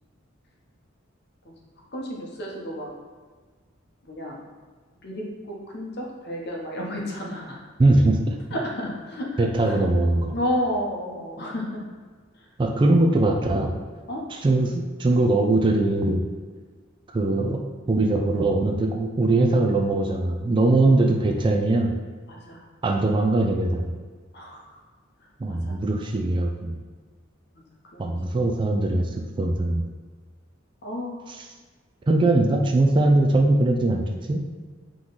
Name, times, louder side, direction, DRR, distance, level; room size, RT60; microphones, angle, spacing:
voice 1, 1.9-2.9 4.0-4.4 5.0-7.6 8.5-9.8 10.3-11.8 12.9-13.1 14.1-14.2 22.3-22.6 24.3-24.7 25.5-25.7 27.9-28.1 30.8-31.3, equal, 55° left, -2 dB, 0.9 m, -31 dB
voice 2, 7.8-8.4 9.4-10.3 12.6-13.7 14.3-16.2 17.1-17.6 17.9-21.9 22.8-23.9 25.4-26.8 28.0-29.8 31.3-31.5 32.1-34.0 34.3-34.4, right 2 dB, 25° right, 2 dB, 0.3 m, -21 dB
3.7 x 3.0 x 3.9 m, 1.5 s
head